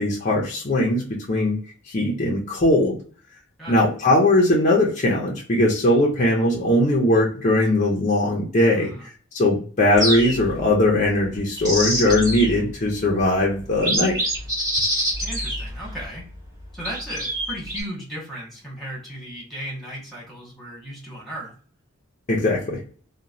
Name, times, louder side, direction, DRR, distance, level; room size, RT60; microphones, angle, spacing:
voice 1, 0.0-1.6 1.9-3.0 3.7-14.2 22.3-22.8, left 1 dB, 35° left, -2 dB, 0.5 m, -20 dB
voice 2, 8.7-9.1 15.2-16.2 16.7-21.5, right 1 dB, ahead, -5 dB, 1.2 m, -35 dB
sound 1, 10.0-10.6 11.4-12.6 13.2-13.3 13.7-16.1 16.8-17.8, equal, 20° right, 1.3 m, -25 dB
2.9 x 2.1 x 2.5 m, 0.42 s
head